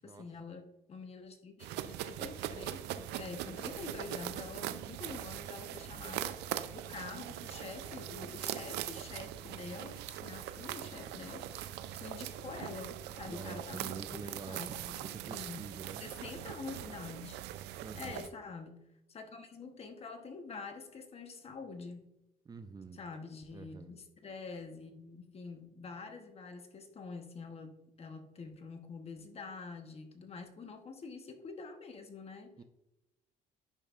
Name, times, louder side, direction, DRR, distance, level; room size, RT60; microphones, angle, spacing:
voice 1, 0.0-11.7 12.0-15.0 15.3-15.7 16.0-17.4 17.9-22.1 22.9-32.6, left 4 dB, 35° left, 6 dB, 1.0 m, -46 dB
sound 1, 1.6-18.3, right 12 dB, 85° right, 0.5 m, -41 dB
voice 2, 13.2-14.6 15.0-16.0 17.8-18.2 22.5-23.0 23.5-23.9 32.6-32.7, right 5 dB, 25° right, 8 dB, 0.5 m, -46 dB
10.5 x 5.3 x 2.5 m, 0.89 s
cardioid pair, 110°, 17 cm